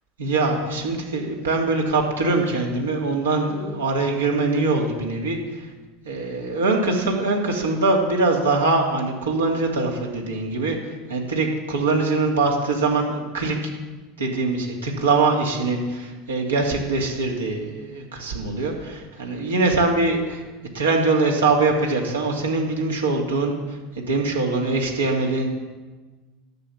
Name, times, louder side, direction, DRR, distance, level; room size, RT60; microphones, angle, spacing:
voice 1, 0.2-5.4 6.1-13.6 14.2-20.4 20.7-23.5 24.0-25.5, right 3 dB, 85° right, 0 dB, 2.4 m, -23 dB
12.0 x 7.7 x 7.2 m, 1.3 s
hypercardioid pair, 80°, 0 cm